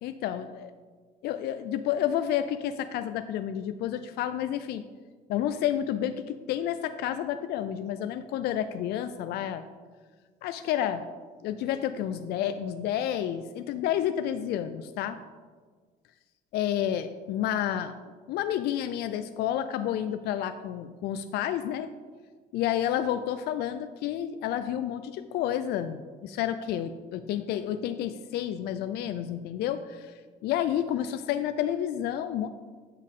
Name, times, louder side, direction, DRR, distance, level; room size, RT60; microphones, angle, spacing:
voice 1, 0.0-0.7 1.2-4.8 5.3-9.6 10.4-11.0 11.4-15.2 16.5-18.0 18.3-21.9 22.5-30.1 30.4-32.5, left 10 dB, 75° left, 10 dB, 0.4 m, -30 dB
8.3 x 6.3 x 3.7 m, 1.5 s
cardioid pair, 110°, 17 cm